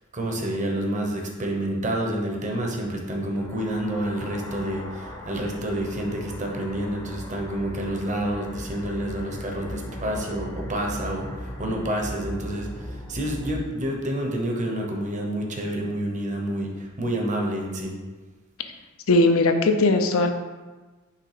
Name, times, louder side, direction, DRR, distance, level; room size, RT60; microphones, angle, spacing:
voice 1, 0.1-17.9, right 1 dB, 35° right, 1 dB, 0.9 m, -28 dB
sound 1, 3.0-13.6, equal, 15° left, 0.7 m, -38 dB
voice 2, 19.1-20.3, left 2 dB, 80° left, 6 dB, 0.6 m, -19 dB
5.7 x 3.3 x 4.9 m, 1.3 s
head